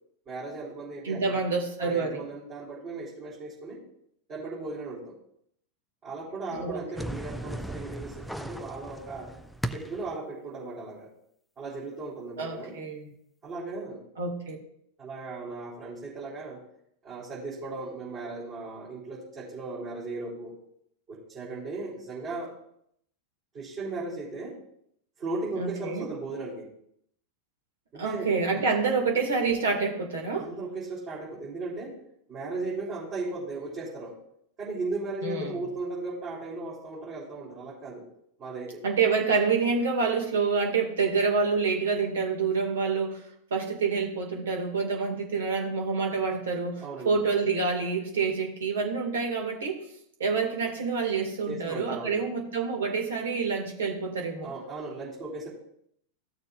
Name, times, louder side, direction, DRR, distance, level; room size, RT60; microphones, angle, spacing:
voice 1, 0.3-1.5 1.8-3.8 4.3-5.2 6.0-9.3 9.7-11.1 11.6-12.7 13.4-14.0 15.0-16.6 17.0-20.5 21.1-22.5 23.5-24.6 25.2-26.7 27.9-28.6 30.4-31.9 32.3-34.2 34.6-38.1 38.4-38.8 46.8-47.1 51.5-52.2 54.4-55.5, right 3 dB, 30° right, -9 dB, 3.7 m, -36 dB
voice 2, 1.0-2.2 6.5-6.8 12.4-13.1 14.2-14.6 25.6-26.1 27.9-30.5 35.2-35.6 38.8-43.2 43.5-49.8 50.2-54.5, right 4 dB, 65° right, 2 dB, 2.1 m, -27 dB
sound 1, 6.9-10.2, equal, ahead, 0.4 m, -37 dB
15.0 x 6.6 x 2.5 m, 0.72 s
figure-of-eight pair, 90°, 0 cm